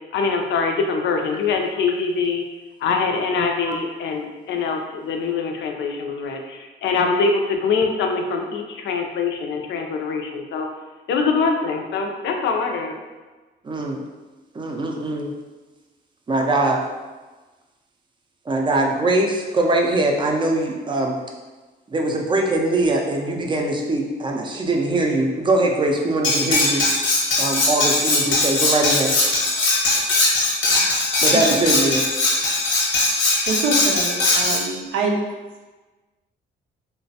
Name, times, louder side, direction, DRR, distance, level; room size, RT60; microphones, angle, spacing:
voice 1, 0.1-2.4 2.8-10.7 11.1-13.0, left 4 dB, 70° left, 3 dB, 0.4 m, -23 dB
voice 2, 13.6-14.0 14.5-15.3 16.3-16.8 18.5-21.2 21.9-26.8 27.4-29.1 31.2-32.0, right 2 dB, 25° right, 1 dB, 0.4 m, -22 dB
Cutlery silverware, 26.2-34.6, left 2 dB, 85° left, 0.8 m, -20 dB
voice 3, 33.5-35.2, right 3 dB, 75° right, 1 dB, 0.5 m, -24 dB
3.0 x 2.2 x 2.7 m, 1.3 s
cardioid pair, 90°, 20 cm